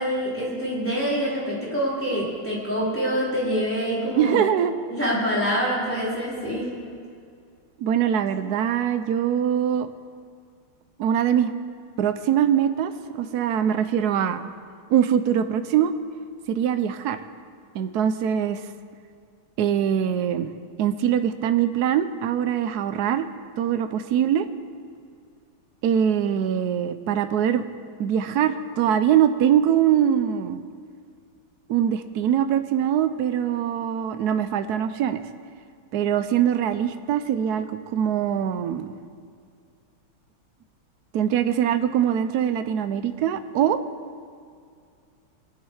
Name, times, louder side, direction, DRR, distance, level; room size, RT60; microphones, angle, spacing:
voice 1, 0.0-4.5 4.9-6.8, equal, 5° left, -8 dB, 4.1 m, -26 dB
voice 2, 4.2-4.7 7.8-9.9 11.0-11.5 12.0-12.9 13.2-14.5 14.9-15.9 16.5-17.2 17.7-18.6 19.6-20.5 20.8-23.3 23.6-24.4 25.8-27.6 28.0-30.6 31.7-35.2 35.9-38.9 41.1-43.8, right 9 dB, 75° right, 10 dB, 0.9 m, -22 dB
22.0 x 9.4 x 4.8 m, 2.2 s
omnidirectional pair, 2.3 m